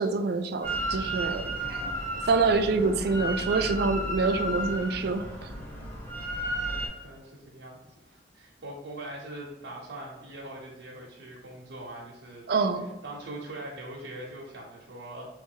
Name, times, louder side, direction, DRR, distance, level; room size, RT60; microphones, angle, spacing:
voice 1, 0.0-1.8 2.3-5.5 12.5-12.9, right 4 dB, 60° right, 8 dB, 0.4 m, -26 dB
Drill, 0.6-6.9, right 1 dB, 10° left, 0.9 m, -33 dB
voice 2, 1.5-2.0 6.6-12.5 12.8-15.3, right 1 dB, 85° right, -3 dB, 0.7 m, -42 dB
3.4 x 3.1 x 3.7 m, 1.0 s
head